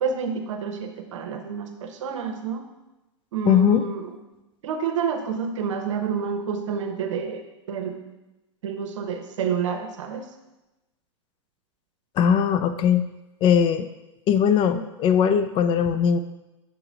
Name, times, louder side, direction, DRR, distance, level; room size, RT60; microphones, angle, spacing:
voice 1, 0.0-2.6 3.3-4.1 4.6-7.4 7.7-8.2 8.6-10.2, right 6 dB, 75° right, 5 dB, 0.9 m, -29 dB
voice 2, 3.4-3.9 12.2-13.0 13.4-13.9 14.3-16.2, left 8 dB, 35° left, 11 dB, 0.4 m, -20 dB
6.9 x 3.0 x 5.1 m, 1.0 s
hypercardioid pair, 110°, 16 cm